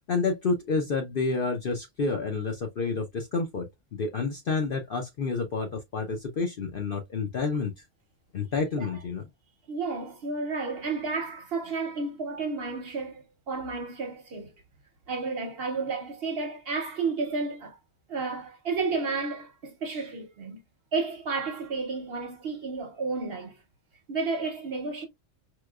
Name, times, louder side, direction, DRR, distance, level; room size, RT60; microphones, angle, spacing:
voice 1, 0.1-7.7 8.3-9.2, left 4 dB, 55° left, 0.6 m, -29 dB
voice 2, 9.7-14.5 15.1-17.8 18.1-20.6 20.9-23.6 24.1-25.1, right 4 dB, 55° right, 0.8 m, -32 dB
4.5 x 2.2 x 2.3 m
omnidirectional pair, 1.4 m